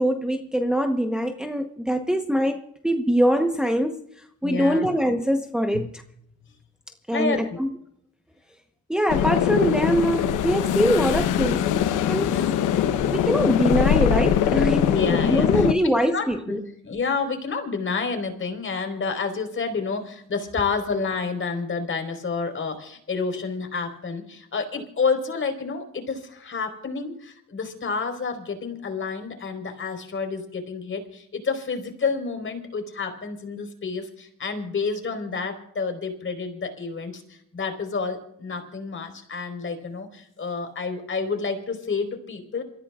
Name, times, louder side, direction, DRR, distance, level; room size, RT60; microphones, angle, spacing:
voice 1, 0.0-4.0 4.4-6.0 7.1-7.7 8.9-11.7 12.1-12.4 13.1-16.6, equal, 5° right, 1.0 m, -23 dB
voice 2, 4.4-4.9 5.7-5.9 7.1-7.6 12.3-12.5 14.9-16.6 16.8-42.6, left 4 dB, 40° left, 4.5 m, -29 dB
sound 1, 9.1-15.7, left 9 dB, 90° left, 1.0 m, -22 dB
27.5 x 15.5 x 2.4 m
cardioid pair, 90°, 30 cm